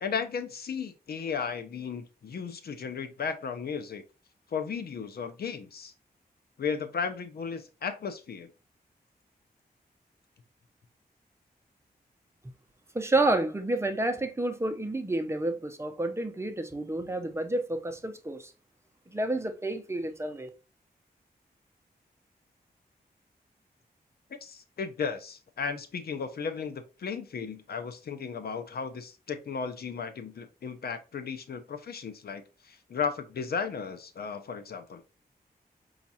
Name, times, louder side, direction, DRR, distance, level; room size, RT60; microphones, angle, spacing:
voice 1, 0.0-4.0 4.5-5.9 6.6-8.5 24.3-35.0, left 6 dB, 70° left, 0.6 m, -35 dB
voice 2, 12.9-18.5 19.1-20.5, right 2 dB, 15° right, 0.7 m, -29 dB
5.1 x 2.4 x 2.7 m
cardioid pair, 70°, 17 cm